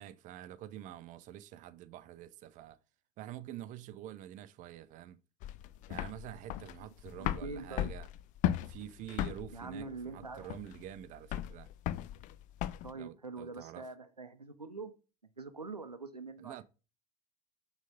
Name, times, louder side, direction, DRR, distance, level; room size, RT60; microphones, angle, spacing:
voice 1, 0.0-2.8 3.2-5.2 5.9-8.1 8.7-11.7 12.9-13.9 16.4-16.6, right 12 dB, 40° right, 0.6 m, -47 dB
sound 1, 5.4-12.9, left 12 dB, 40° left, 0.5 m, -36 dB
voice 2, 7.2-7.9 9.5-10.5 12.8-14.9 15.4-16.6, right 4 dB, 90° right, 0.7 m, -44 dB
6.4 x 4.1 x 5.0 m
figure-of-eight pair, 70°, 20 cm